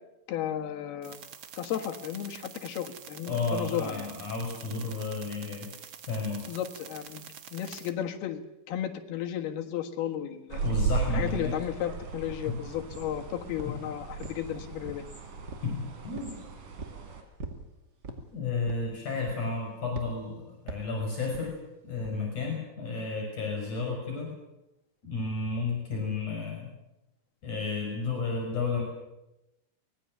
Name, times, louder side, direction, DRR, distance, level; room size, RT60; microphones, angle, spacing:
voice 1, 0.3-1.2 1.6-4.1 6.5-10.6 11.1-15.1, left 10 dB, 80° left, 3 dB, 3.6 m, -34 dB
sound 1, 1.0-7.9, right 8 dB, 75° right, 1.1 m, -47 dB
voice 2, 3.3-5.7 6.1-6.5 10.6-11.6 12.5-12.6 13.7-13.8 15.6-16.3 18.3-21.5 21.8-24.3 25.0-26.7 27.4-28.8, left 4 dB, 50° left, 1 dB, 7.4 m, -32 dB
sound 2, 10.5-17.2, right 5 dB, 60° right, 4.4 m, -35 dB
sound 3, 12.3-12.4 12.9-13.2 13.6-13.8 14.2-15.1 15.5-15.7 16.1-16.4 16.8-17.0 17.4-17.7 18.0-18.3 18.7-18.9 19.3-19.6 19.9-20.1 20.7-20.9 21.3-21.5 22.0-22.2, right 3 dB, 30° right, 2.3 m, -41 dB
24.5 x 20.0 x 7.9 m, 0.93 s
omnidirectional pair, 4.4 m